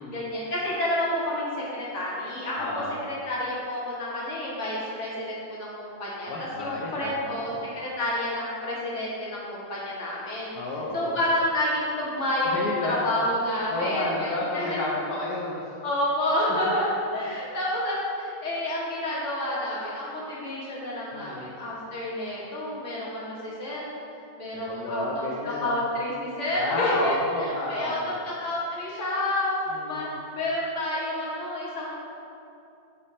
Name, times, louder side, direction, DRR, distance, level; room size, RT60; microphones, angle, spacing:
voice 1, 0.1-6.3 6.6-10.5 10.9-14.8 15.8-23.9 24.4-30.1 30.4-32.0, left 1 dB, 40° left, -6 dB, 1.7 m, -29 dB
voice 2, 2.5-3.0 6.3-7.6 10.5-11.2 12.4-13.2 13.7-15.7 16.6-16.7 17.2-17.3 21.1-21.6 24.5-25.8 26.5-28.2 29.7-30.1, left 2 dB, 60° left, -4 dB, 1.1 m, -31 dB
9.2 x 3.4 x 4.2 m, 2.6 s
omnidirectional pair, 2.2 m